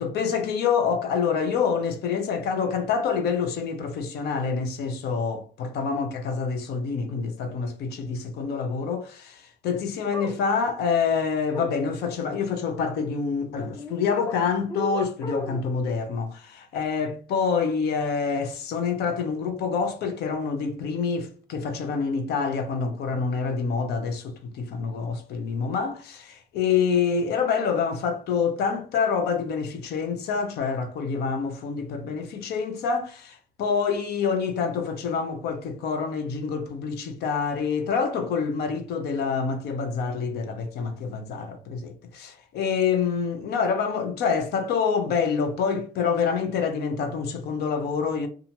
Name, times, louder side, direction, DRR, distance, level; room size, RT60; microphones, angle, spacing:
voice 1, 0.0-48.3, left 5 dB, 70° left, 0.7 m, -27 dB
sound 1, 10.1-10.4 11.5-11.7 13.8-14.3 14.7-15.7, left 1 dB, 20° left, 0.7 m, -34 dB
2.7 x 2.4 x 2.8 m
cardioid pair, 110°, 17 cm